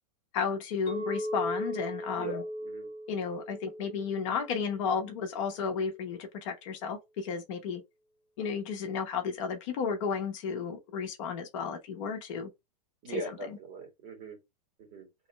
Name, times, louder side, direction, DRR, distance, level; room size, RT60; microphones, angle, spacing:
voice 1, 0.3-2.4 3.1-7.8 8.4-12.5 13.1-13.6, left 6 dB, 50° left, 1.0 m, -33 dB
Chink clink, 0.9-5.1, equal, 20° left, 0.8 m, -38 dB
voice 2, 2.2-2.9 13.0-14.4 14.8-15.1, right 3 dB, 30° right, 1.8 m, -40 dB
3.1 x 2.6 x 4.3 m
hypercardioid pair, 150°, 21 cm